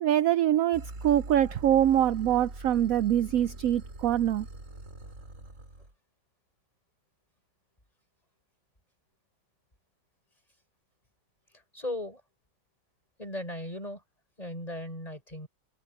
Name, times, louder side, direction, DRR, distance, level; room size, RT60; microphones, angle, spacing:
voice 1, 0.0-4.5, right 11 dB, 70° right, 0.8 m, -24 dB
sound 1, 0.7-5.9, right 2 dB, 45° right, 4.9 m, -43 dB
voice 2, 11.7-12.2 13.2-14.0 14.4-15.5, left 1 dB, 20° left, 6.3 m, -37 dB
omnidirectional pair, 1.9 m